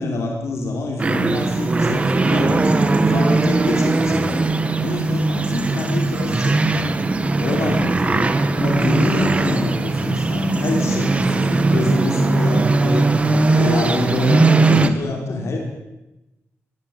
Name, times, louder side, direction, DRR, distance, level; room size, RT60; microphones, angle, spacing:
voice 1, 0.0-2.7 3.0-7.0 7.4-15.6, left 2 dB, 70° left, 1 dB, 5.4 m, -26 dB
sound 1, 1.0-14.9, right 3 dB, 25° right, 2.0 m, -19 dB
25.0 x 21.5 x 9.7 m, 0.98 s
wide cardioid pair, 165°, 5 cm